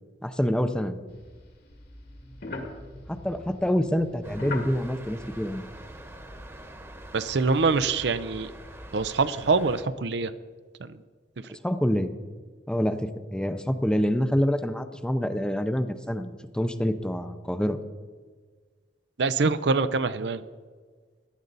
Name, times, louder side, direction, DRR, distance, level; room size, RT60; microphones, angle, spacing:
voice 1, 0.2-1.0 3.1-5.6 11.5-12.1 12.7-17.8, equal, 5° left, 10 dB, 0.6 m, -26 dB
sound 1, 1.1-6.1, left 2 dB, 60° left, 2.1 m, -40 dB
sound 2, 4.2-9.8, right 1 dB, 15° right, 1.1 m, -44 dB
voice 2, 7.1-8.5 8.9-10.3 10.8-11.0 19.2-20.4, right 4 dB, 70° right, 13 dB, 0.6 m, -25 dB
16.0 x 11.5 x 4.1 m, 1.5 s
head